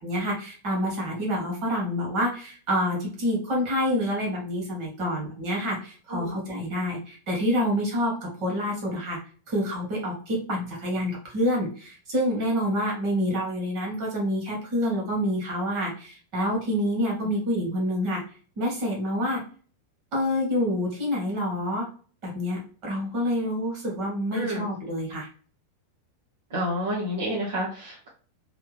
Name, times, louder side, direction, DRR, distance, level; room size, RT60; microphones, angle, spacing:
voice 1, 0.0-9.2 9.5-18.2 18.6-19.4 20.1-21.9 22.2-25.3, equal, 40° right, -2 dB, 2.1 m, -27 dB
voice 2, 24.3-24.6 26.5-28.1, equal, 60° right, -5 dB, 1.3 m, -29 dB
3.5 x 3.3 x 3.4 m, 0.41 s
figure-of-eight pair, 90°, 0 cm